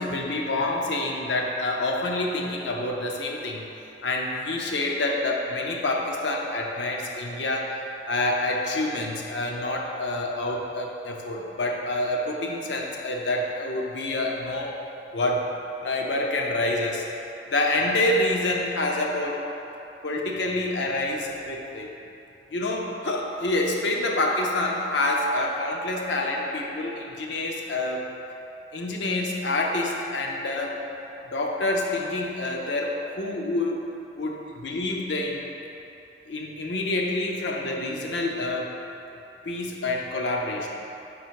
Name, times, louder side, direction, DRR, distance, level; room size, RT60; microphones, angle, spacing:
voice 1, 0.0-3.7 4.0-7.7 8.1-14.7 15.1-15.5 15.8-17.0 17.5-19.4 20.0-21.9 22.5-28.1 28.7-30.8 31.3-33.8 34.2-35.4 36.3-38.7 39.4-40.7, left 2 dB, 85° left, 0 dB, 0.7 m, -27 dB
5.2 x 3.8 x 4.6 m, 3.0 s
head